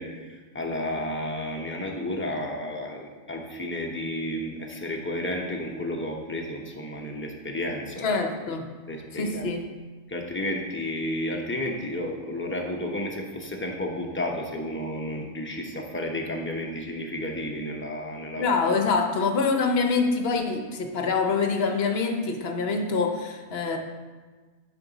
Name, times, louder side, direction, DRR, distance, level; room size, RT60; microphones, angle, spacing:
voice 1, 0.0-8.0 8.9-9.5 10.1-18.4, left 1 dB, 15° left, 0 dB, 0.6 m, -32 dB
voice 2, 8.0-8.7 9.1-9.6 18.4-23.8, left 4 dB, 55° left, 4 dB, 0.8 m, -25 dB
9.5 x 4.6 x 4.0 m, 1.3 s
omnidirectional pair, 1.4 m